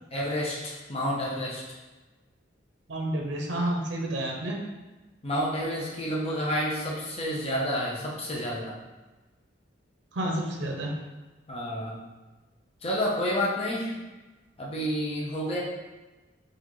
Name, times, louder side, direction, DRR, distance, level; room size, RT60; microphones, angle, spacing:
voice 1, 0.1-1.6 5.2-8.7 11.5-12.0 12.8-13.9 14.6-15.6, equal, 35° left, -5 dB, 0.8 m, -29 dB
voice 2, 2.9-4.6 10.1-10.9, right 1 dB, 70° right, 0 dB, 0.6 m, -30 dB
4.1 x 2.5 x 3.0 m, 1.2 s
head